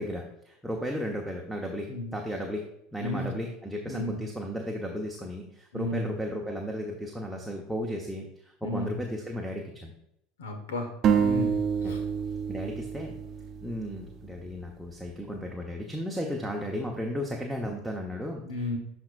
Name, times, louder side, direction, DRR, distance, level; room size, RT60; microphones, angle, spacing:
voice 1, 0.0-9.9 11.8-11.9 12.5-13.1 13.6-18.4, equal, ahead, -1 dB, 1.0 m, -34 dB
voice 2, 3.8-4.2 5.7-6.1 8.6-9.0 10.4-12.0 18.4-18.8, left 2 dB, 80° left, 6 dB, 1.3 m, -34 dB
sound 1, 11.0-14.7, right 7 dB, 45° right, 0.7 m, -28 dB
11.5 x 4.4 x 2.5 m, 0.78 s
hypercardioid pair, 80°, 0 cm